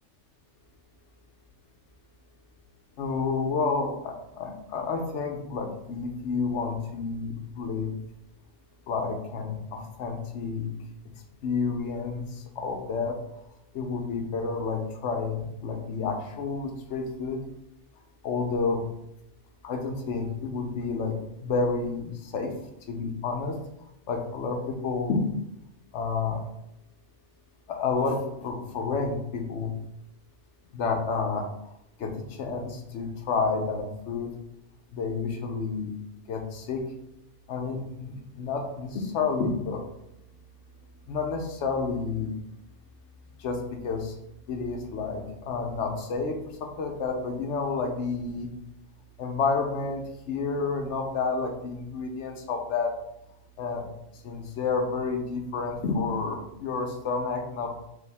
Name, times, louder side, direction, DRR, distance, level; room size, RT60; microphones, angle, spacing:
voice 1, 3.0-8.0 8.9-10.7 11.4-12.2 12.6-13.1 13.7-17.4 18.2-18.8 19.6-21.1 21.4-22.0 22.3-22.5 22.9-23.6 24.1-25.2 25.9-26.4 27.7-29.7 30.7-31.5 32.0-32.1 32.4-34.3 34.9-35.9 36.3-36.8 37.5-39.8 41.1-42.3 43.4-43.6 43.8-44.1 44.5-46.4 46.8-48.5 49.2-52.9 53.6-53.9 54.2-57.8, left 4 dB, 75° left, 3 dB, 0.9 m, -30 dB
5.1 x 2.2 x 3.4 m, 0.81 s
omnidirectional pair, 1.3 m